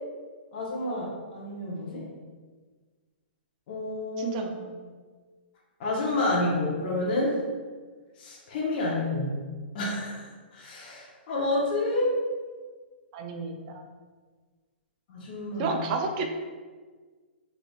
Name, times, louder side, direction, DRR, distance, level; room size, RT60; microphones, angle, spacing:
voice 1, 0.5-2.1 3.7-4.4 5.8-7.3 8.2-9.4 9.7-10.2 10.5-12.1 15.1-15.8, left 2 dB, 45° left, -4 dB, 1.0 m, -29 dB
voice 2, 4.2-4.8 13.1-13.9 15.6-16.3, right 4 dB, 40° right, 4 dB, 0.4 m, -31 dB
3.7 x 3.3 x 2.4 m, 1.4 s
hypercardioid pair, 140°, 6 cm